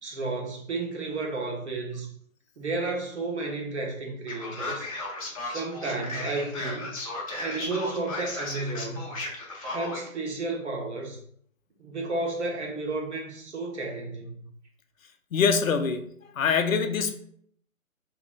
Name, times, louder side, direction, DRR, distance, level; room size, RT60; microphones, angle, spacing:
voice 1, 0.0-2.1 2.6-4.9 5.4-6.9 7.3-9.2 9.6-11.2 11.8-14.4, right 3 dB, 55° right, 0 dB, 1.2 m, -32 dB
Male speech man speaking, 4.3-10.1, left 2 dB, 25° left, 0.9 m, -35 dB
voice 2, 15.3-17.1, left 6 dB, 70° left, 7 dB, 0.6 m, -24 dB
3.6 x 3.0 x 3.6 m, 0.65 s
hypercardioid pair, 165°, 42 cm